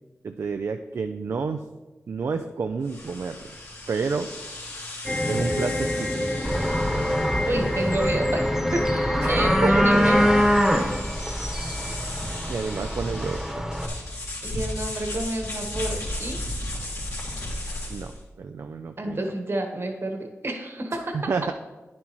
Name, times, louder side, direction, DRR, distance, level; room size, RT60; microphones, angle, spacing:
voice 1, 0.2-1.6 2.1-3.4 3.9-4.3 5.3-6.3 9.2-10.0 12.5-13.7 17.9-19.2 20.9-21.5, right 5 dB, 65° right, 6 dB, 0.4 m, -30 dB
sound 1, 2.8-18.2, left 1 dB, 75° left, 2.4 m, -36 dB
sound 2, 5.0-10.4, left 1 dB, 10° left, 0.5 m, -26 dB
sound 3, 6.4-13.9, equal, 10° right, 1.1 m, -25 dB
voice 2, 7.5-10.3 14.4-16.4 19.0-21.3, right 1 dB, 50° right, 4 dB, 1.3 m, -30 dB
9.6 x 7.4 x 3.0 m, 1.1 s
cardioid pair, 45°, 5 cm